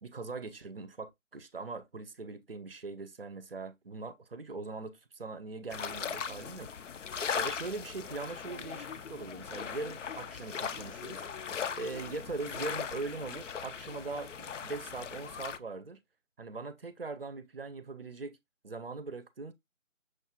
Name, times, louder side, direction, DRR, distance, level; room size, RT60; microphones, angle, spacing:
voice 1, 0.0-6.9 7.4-11.2 11.7-16.0 16.4-18.4 18.6-19.5, right 3 dB, 45° right, 0.5 m, -41 dB
sound 1, 5.7-15.6, left 7 dB, 65° left, 0.5 m, -39 dB
6.3 x 2.3 x 2.8 m
figure-of-eight pair, 160°, 40 cm